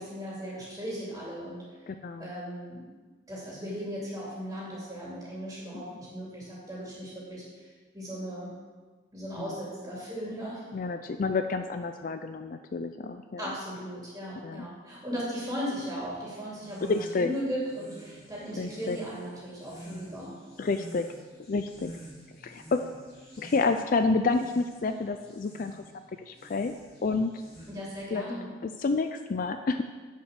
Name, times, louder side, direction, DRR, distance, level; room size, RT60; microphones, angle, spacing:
voice 1, 0.0-1.7 2.2-2.9 3.3-8.6 9.1-10.7 13.4-20.4 27.7-28.5, equal, 15° right, -6 dB, 2.7 m, -37 dB
voice 2, 1.9-2.3 5.7-5.8 9.4-9.5 10.7-13.5 14.4-14.7 16.9-17.3 18.6-19.0 20.6-21.1 21.5-21.9 22.4-22.8 23.4-25.8 26.3-26.7 27.0-27.3 28.1-28.2 28.6-29.8, left 3 dB, 45° left, 8 dB, 0.4 m, -29 dB
sound 1, 16.5-28.0, equal, 25° left, 3.4 m, -50 dB
10.0 x 5.3 x 6.7 m, 1.4 s
head